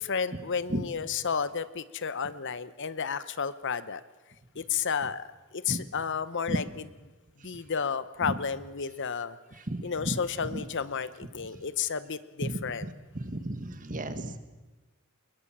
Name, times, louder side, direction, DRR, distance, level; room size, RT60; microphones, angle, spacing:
voice 1, 0.0-4.0 4.5-5.3 5.5-6.6 7.4-9.4 9.8-12.9, left 6 dB, 55° left, 15 dB, 0.9 m, -32 dB
voice 2, 9.7-10.2 10.5-10.6 12.4-12.6 13.1-14.4, right 1 dB, 35° right, 10 dB, 1.6 m, -32 dB
24.0 x 21.5 x 7.4 m, 1.2 s
head